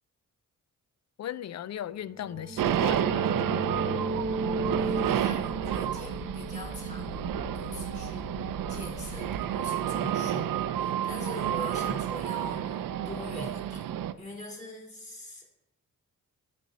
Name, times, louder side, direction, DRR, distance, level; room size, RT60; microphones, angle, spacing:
voice 1, 1.2-3.3, left 11 dB, 55° left, 0.5 m, -37 dB
sound 1, 2.0-7.6, right 2 dB, 30° right, 1.0 m, -35 dB
sound 2, 2.6-14.1, right 10 dB, 80° right, 0.6 m, -30 dB
sound 3, 4.0-9.3, left 2 dB, 75° left, 2.4 m, -43 dB
voice 2, 4.8-7.3 7.5-8.3 8.7-13.8 14.2-15.5, left 1 dB, 20° left, 3.9 m, -43 dB
13.0 x 6.0 x 4.1 m
cardioid pair, 80°, 33 cm